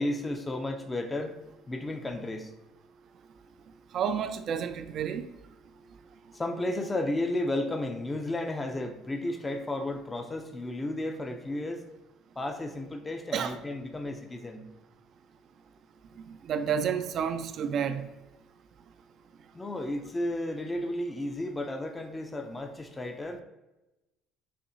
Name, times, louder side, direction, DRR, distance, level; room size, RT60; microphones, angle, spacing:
voice 1, 0.0-1.3 1.7-2.5 6.4-11.8 12.4-14.6 19.6-23.4, left 1 dB, 20° left, 4 dB, 0.5 m, -33 dB
voice 2, 3.9-5.2 13.3-13.6 16.3-18.1 22.5-22.6, right 7 dB, 55° right, 10 dB, 0.3 m, -30 dB
6.7 x 2.7 x 2.7 m, 1.0 s
supercardioid pair, 85°, 0 cm